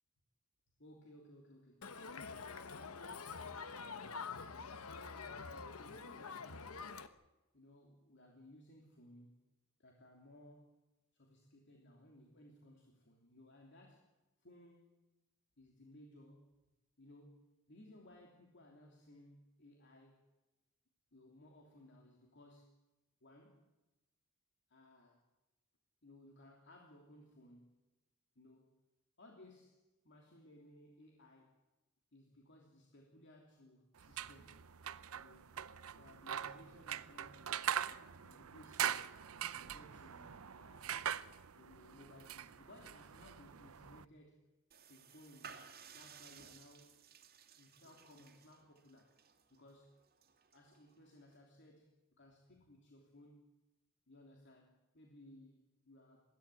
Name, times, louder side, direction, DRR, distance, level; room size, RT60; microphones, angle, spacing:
voice 1, 0.8-2.0 2.5-3.4 4.9-6.7 7.5-9.4 9.8-10.8 11.1-14.1 14.4-14.9 15.6-16.6 17.0-20.3 21.1-22.8 23.2-23.7 24.7-25.3 26.0-27.8 28.3-28.8 29.2-31.6 32.1-34.6 35.1-35.6 35.9-39.1 39.5-41.1 41.5-44.5 44.8-45.6 45.9-47.0 47.6-49.2 49.5-50.0 50.5-53.5 54.1-56.2, left 1 dB, 55° left, 1 dB, 3.0 m, -61 dB
Crowd, 1.8-7.1, left 5 dB, 80° left, 1.2 m, -46 dB
sound 1, 34.0-44.0, right 9 dB, 75° right, 0.7 m, -42 dB
sound 2, 44.7-51.4, right 6 dB, 45° right, 2.3 m, -58 dB
22.0 x 15.5 x 9.8 m, 1.0 s
head